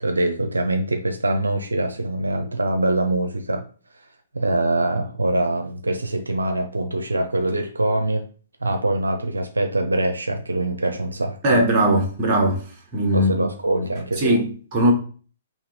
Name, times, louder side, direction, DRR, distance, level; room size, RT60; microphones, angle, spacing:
voice 1, 0.0-3.6 4.3-8.3 8.6-11.7 13.1-14.4, right 1 dB, 90° right, 0.5 m, -23 dB
voice 2, 11.4-12.6 12.9-13.4 13.7-13.8 14.2-14.9, right 1 dB, 30° right, 1.4 m, -20 dB
4.0 x 2.9 x 4.0 m
figure-of-eight pair, 125°, 0 cm